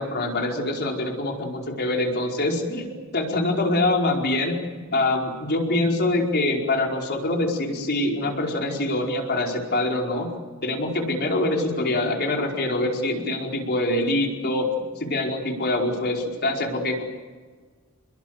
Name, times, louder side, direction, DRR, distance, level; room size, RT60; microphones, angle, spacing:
voice 1, 0.0-4.6 4.9-10.3 10.6-14.7 15.0-17.0, left 2 dB, 50° left, 1 dB, 4.9 m, -24 dB
29.5 x 21.5 x 8.2 m, 1.5 s
head